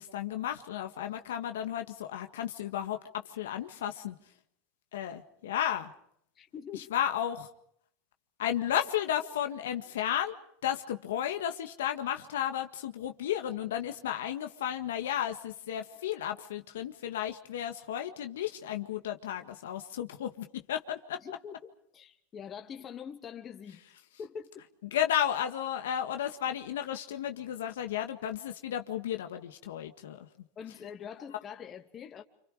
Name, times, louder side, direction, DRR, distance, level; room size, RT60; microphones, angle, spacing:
voice 1, 0.0-4.2 4.9-5.9 6.7-7.5 8.4-10.3 10.6-21.2 24.9-30.3, left 10 dB, 85° left, 1.8 m, -33 dB
voice 2, 6.4-6.9 21.2-23.8 24.2-24.6 30.6-32.2, left 7 dB, 35° left, 2.5 m, -44 dB
28.0 x 26.5 x 5.1 m
hypercardioid pair, 105°, 0 cm